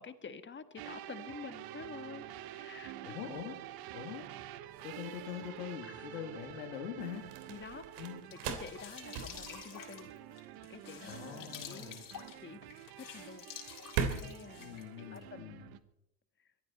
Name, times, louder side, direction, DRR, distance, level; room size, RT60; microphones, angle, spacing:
voice 1, 0.0-2.3 2.5-3.2 5.8-6.2 7.5-8.0 8.4-10.1 10.7-12.0 12.4-12.6 13.0-13.5 14.2-15.6, left 6 dB, 25° left, 10 dB, 1.6 m, -49 dB
sound 1, 0.8-15.8, right 13 dB, 55° right, 1.2 m, -49 dB
sound 2, 2.0-15.8, right 6 dB, 70° right, 3.2 m, -43 dB
voice 2, 3.0-3.6 3.9-4.5 4.8-7.5 8.0-8.2 11.0-12.0 14.5-15.7, left 8 dB, 90° left, 3 dB, 2.4 m, -44 dB
sound 3, 8.0-15.3, left 8 dB, 50° left, 3.9 m, -50 dB
23.0 x 14.0 x 4.3 m, 0.80 s
hypercardioid pair, 75°, 44 cm